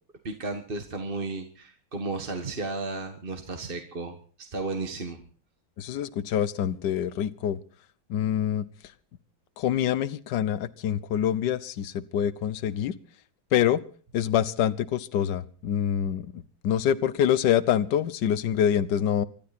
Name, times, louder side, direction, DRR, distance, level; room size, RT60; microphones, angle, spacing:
voice 1, 0.2-5.2, right 3 dB, 30° right, 6 dB, 1.6 m, -34 dB
voice 2, 5.8-7.6 8.1-8.6 9.6-12.9 13.5-13.8 14.1-19.2, left 9 dB, 65° left, 17 dB, 1.5 m, -26 dB
25.5 x 12.5 x 4.3 m, 0.42 s
omnidirectional pair, 2.2 m